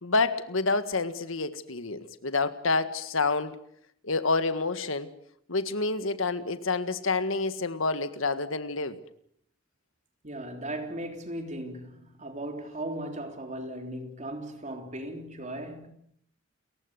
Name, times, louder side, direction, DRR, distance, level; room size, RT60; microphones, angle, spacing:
voice 1, 0.0-3.6 4.0-5.1 5.5-9.0, left 3 dB, 70° left, 1.7 m, -28 dB
voice 2, 10.2-15.9, right 1 dB, 35° right, 3.6 m, -37 dB
30.0 x 15.5 x 8.1 m
head